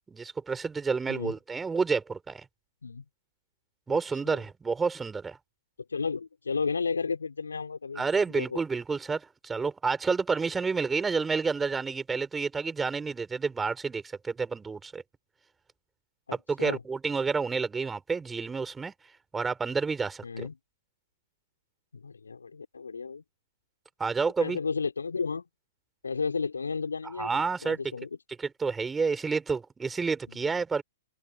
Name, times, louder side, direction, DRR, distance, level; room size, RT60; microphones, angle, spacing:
voice 1, 0.1-2.4 3.9-5.4 7.9-15.0 16.3-18.9 19.3-20.5 24.0-24.6 27.2-27.9 28.4-30.8, right 5 dB, 10° right, 5.0 m, -29 dB
voice 2, 5.9-8.6 16.3-16.8 20.2-20.5 21.9-23.2 24.4-25.4 26.0-28.1 30.3-30.6, left 5 dB, 80° left, 5.5 m, -33 dB
open air
hypercardioid pair, 120°, 0 cm